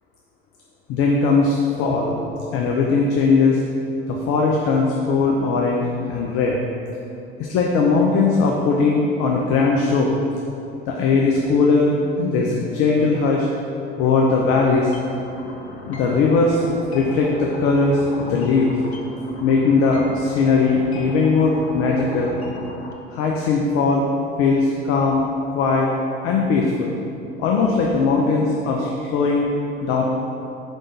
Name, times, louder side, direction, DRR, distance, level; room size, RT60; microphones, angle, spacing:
voice 1, 0.9-2.2 2.5-3.6 4.1-6.6 7.5-10.2 10.9-13.5 14.0-14.9 15.9-16.6 16.9-18.7 19.4-22.3 23.1-24.1 24.4-25.2 25.5-25.9 26.2-27.0 27.4-29.5 29.8-30.0, left 4 dB, 45° left, -1 dB, 0.7 m, -19 dB
sound 1, 14.9-22.9, left 2 dB, 80° left, 0.7 m, -36 dB
5.0 x 3.6 x 5.5 m, 2.7 s
figure-of-eight pair, 60°, 32 cm